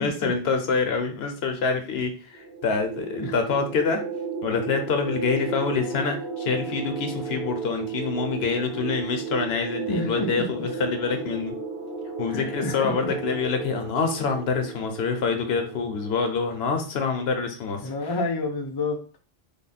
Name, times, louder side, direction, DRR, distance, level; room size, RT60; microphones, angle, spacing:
voice 1, 0.0-4.0 4.4-11.6 12.2-17.9, left 5 dB, 70° left, 5 dB, 0.9 m, -26 dB
sound 1, 2.3-16.6, right 5 dB, 45° right, 1.5 m, -34 dB
voice 2, 9.9-10.5 12.3-13.1 17.8-19.2, left 2 dB, 35° left, 3 dB, 0.4 m, -30 dB
3.5 x 2.1 x 4.0 m, 0.37 s
omnidirectional pair, 1.1 m